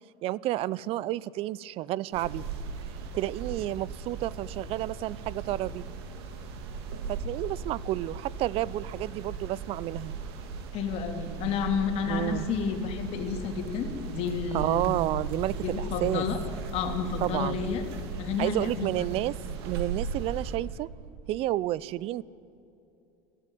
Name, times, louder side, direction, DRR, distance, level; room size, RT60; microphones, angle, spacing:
voice 1, 0.2-2.4 3.1-5.9 7.1-10.1 12.1-12.5 14.5-16.2 17.2-17.6 18.4-19.3 19.6-20.9 21.3-22.2, right 15 dB, 45° right, 22 dB, 0.5 m, -30 dB
sound 1, 2.1-20.6, right 4 dB, 80° right, 2.4 m, -37 dB
voice 2, 10.7-14.9 15.6-16.4 16.7-17.8 18.2-19.1, left 6 dB, 50° left, 4 dB, 3.0 m, -31 dB
21.5 x 15.0 x 9.3 m, 2.8 s
supercardioid pair, 125°, 13 cm